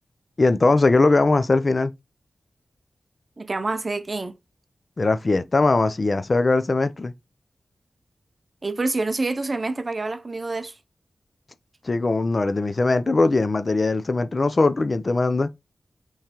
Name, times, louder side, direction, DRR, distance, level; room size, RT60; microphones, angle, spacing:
voice 1, 0.4-1.9 5.0-7.1 11.8-15.5, left 3 dB, 40° left, 0.5 m, -20 dB
voice 2, 3.4-4.4 8.6-10.7, right 3 dB, 40° right, 0.5 m, -27 dB
5.7 x 3.2 x 2.9 m
wide cardioid pair, 85°, 0 cm